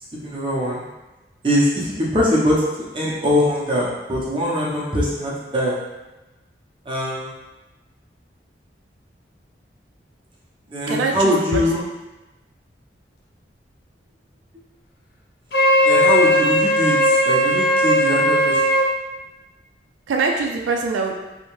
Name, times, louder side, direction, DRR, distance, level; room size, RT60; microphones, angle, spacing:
voice 1, 0.2-0.8 1.4-2.6 2.9-5.8 6.9-7.3 10.7-11.8 15.8-18.6, equal, 30° right, -6 dB, 0.6 m, -22 dB
voice 2, 10.9-11.9 20.1-21.2, right 4 dB, 90° right, 1 dB, 0.3 m, -23 dB
Wind instrument woodwind instrument, 15.5-18.9, equal, 55° left, 0.4 m, -17 dB
2.7 x 2.1 x 3.0 m, 1.1 s
head